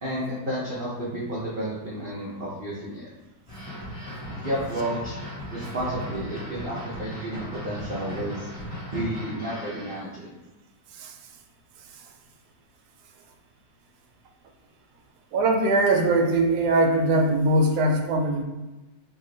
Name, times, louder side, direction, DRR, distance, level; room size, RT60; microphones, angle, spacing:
voice 1, 0.0-3.1 4.4-5.1 5.5-8.5 8.9-10.4, right 1 dB, 60° right, -6 dB, 0.5 m, -31 dB
sound 1, 3.5-10.0, equal, 20° left, 1.4 m, -37 dB
voice 2, 15.3-18.4, right 2 dB, 80° right, 3 dB, 1.1 m, -21 dB
3.0 x 2.4 x 3.7 m, 1.1 s
omnidirectional pair, 1.7 m